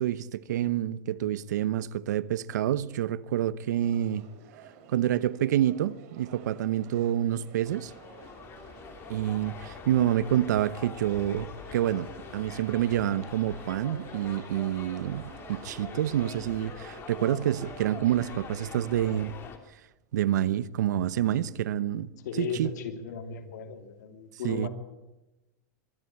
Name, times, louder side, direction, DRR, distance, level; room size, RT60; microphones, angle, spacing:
voice 1, 0.0-4.3 4.9-7.9 9.1-19.3 20.1-22.1 22.4-22.7 24.4-24.7, right 11 dB, 85° right, 0.9 m, -28 dB
sound 1, 3.8-19.1, right 6 dB, 60° right, 3.7 m, -51 dB
sound 2, 7.7-19.6, left 5 dB, 25° left, 2.6 m, -44 dB
voice 2, 22.2-24.7, left 6 dB, 80° left, 3.1 m, -36 dB
23.5 x 13.0 x 8.6 m
supercardioid pair, 145°, 9 cm